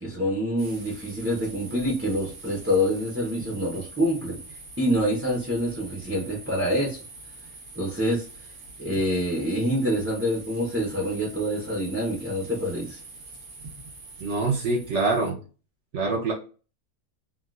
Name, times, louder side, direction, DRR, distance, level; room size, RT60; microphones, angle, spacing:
voice 1, 0.0-4.4 4.8-7.0 7.7-8.3 8.8-13.0, equal, 15° right, -3 dB, 0.6 m, -26 dB
sound 1, 0.6-15.3, right 3 dB, 80° right, 1.5 m, -44 dB
voice 2, 14.2-15.4 15.9-16.3, right 3 dB, 60° right, -1 dB, 0.9 m, -25 dB
3.7 x 2.3 x 2.3 m, 0.35 s
omnidirectional pair, 1.7 m